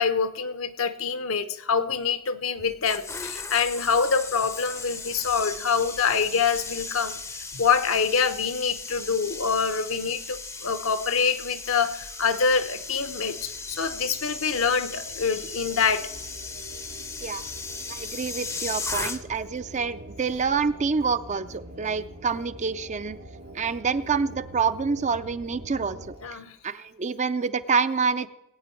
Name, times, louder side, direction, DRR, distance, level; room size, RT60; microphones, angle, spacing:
voice 1, 0.0-7.2 7.5-16.1 26.2-26.5, left 5 dB, 65° left, 11 dB, 0.9 m, -25 dB
sound 1, 2.6-19.5 19.8-20.1, left 4 dB, 15° left, 0.6 m, -37 dB
sound 2, 12.4-26.2, right 1 dB, 85° right, 3.4 m, -45 dB
voice 2, 17.9-23.2 23.5-26.0 26.6-28.3, right 5 dB, 30° right, 12 dB, 0.5 m, -27 dB
20.0 x 9.1 x 4.5 m, 0.89 s
head